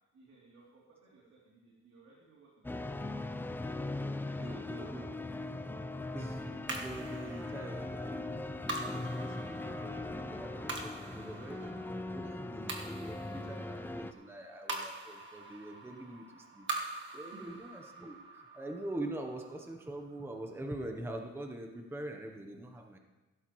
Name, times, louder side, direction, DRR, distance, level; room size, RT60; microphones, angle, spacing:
voice 1, 0.1-3.5 4.0-5.2 17.2-17.5, right 3 dB, 65° right, -5 dB, 2.9 m, -60 dB
Beach Piano, 2.6-14.1, left 2 dB, 5° left, 0.3 m, -40 dB
voice 2, 4.4-5.1 6.1-16.7 17.1-23.0, right 1 dB, 10° right, 3 dB, 0.8 m, -44 dB
sound 1, 6.7-21.2, right 3 dB, 40° right, 1.5 m, -45 dB
16.0 x 13.0 x 3.1 m, 1.2 s
wide cardioid pair, 170°, 29 cm